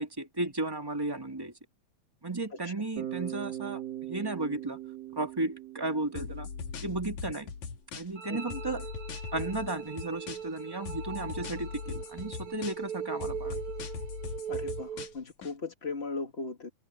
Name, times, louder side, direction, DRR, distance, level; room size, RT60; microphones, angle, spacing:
voice 1, 0.0-1.5 2.2-4.8 5.1-6.5 6.8-7.5 8.0-8.9 9.3-13.6, right 2 dB, 10° right, 2.0 m, -34 dB
Bass guitar, 3.0-7.0, right 12 dB, 90° right, 5.0 m, -40 dB
sound 1, 6.2-8.2 8.5-10.6 10.9-12.9 13.2-15.5, left 6 dB, 60° left, 3.4 m, -40 dB
sound 2, 8.2-15.1, right 8 dB, 45° right, 2.6 m, -40 dB
voice 2, 8.3-8.6 14.5-16.7, left 3 dB, 25° left, 1.5 m, -38 dB
omnidirectional pair, 3.9 m